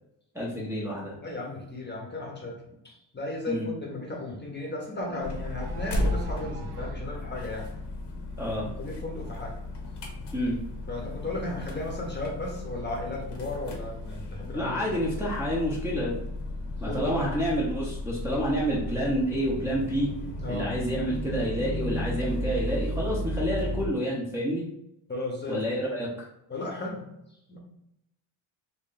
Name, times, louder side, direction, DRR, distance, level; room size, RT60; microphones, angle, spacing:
voice 1, 0.3-1.2 3.5-3.7 8.4-8.7 10.3-10.6 14.5-16.2 16.8-20.1 20.5-24.6 25.5-26.3, equal, 5° right, -6 dB, 0.8 m, -29 dB
voice 2, 1.2-2.6 2.8-7.7 8.5-9.6 10.9-14.9 16.8-17.3 20.4-20.7 25.1-25.6 26.5-27.0 27.5-27.6, left 2 dB, 20° left, -1 dB, 0.9 m, -35 dB
sound 1, 5.0-7.1, right 3 dB, 55° right, 0.6 m, -43 dB
sound 2, 5.2-23.9, left 1 dB, 60° left, 0.9 m, -34 dB
3.1 x 2.5 x 3.8 m, 0.82 s
cardioid pair, 120°, 48 cm